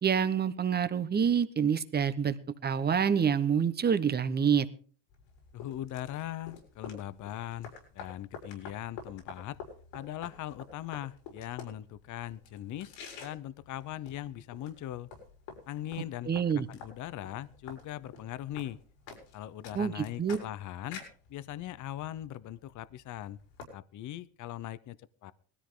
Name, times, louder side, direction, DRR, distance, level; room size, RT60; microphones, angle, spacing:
voice 1, 0.0-2.4 2.6-4.7 16.2-16.7 19.7-20.4, right 7 dB, 20° right, 12 dB, 1.0 m, -27 dB
sound 1, 5.1-23.6, left 5 dB, 90° left, 6.1 m, -50 dB
voice 2, 5.5-9.6 9.9-12.9 13.2-15.1 15.7-18.8 19.3-21.0 21.3-23.4 23.7-25.3, left 13 dB, 45° left, 18 dB, 0.7 m, -40 dB
19.5 x 13.5 x 3.7 m, 0.44 s
cardioid pair, 135°, 44 cm